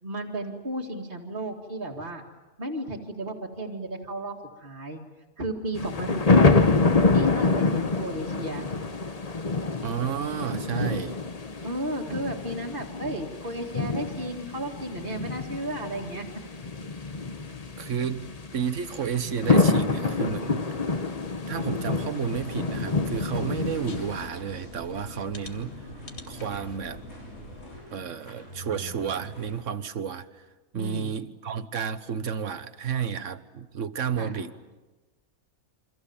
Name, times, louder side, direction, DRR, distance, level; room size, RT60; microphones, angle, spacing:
voice 1, 0.0-2.2 2.6-5.0 5.4-6.7 7.1-8.7 11.6-16.3 30.7-31.1 34.2-34.4, right 1 dB, 35° right, 2.4 m, -34 dB
sound 1, 5.7-24.3, left 3 dB, 30° left, 1.0 m, -26 dB
voice 2, 9.8-11.2 17.8-18.3 18.5-20.7 20.9-21.0 21.5-25.8 26.3-27.0 27.9-30.4 30.7-34.5, right 7 dB, 60° right, 1.4 m, -31 dB
sound 2, 21.8-29.6, equal, 75° left, 8.5 m, -46 dB
sound 3, 22.2-27.8, left 2 dB, 45° left, 2.2 m, -44 dB
28.5 x 25.0 x 7.2 m
omnidirectional pair, 1.5 m